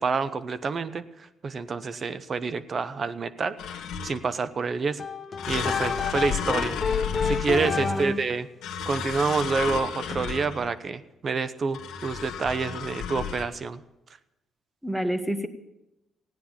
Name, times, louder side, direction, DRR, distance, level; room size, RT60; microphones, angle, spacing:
voice 1, 0.0-3.6 4.0-5.0 5.5-6.8 7.2-8.5 8.9-13.8, right 4 dB, 45° right, 14 dB, 0.9 m, -28 dB
sound 1, 3.6-4.4 5.4-8.1 8.6-10.8 11.7-13.4, left 7 dB, 80° left, 1.6 m, -33 dB
sound 2, 5.0-8.3, left 5 dB, 40° left, 0.8 m, -29 dB
voice 2, 7.8-8.2 14.8-15.5, right 1 dB, 5° right, 10 dB, 1.2 m, -28 dB
16.0 x 9.8 x 7.2 m, 0.92 s
cardioid pair, 90°, 0 cm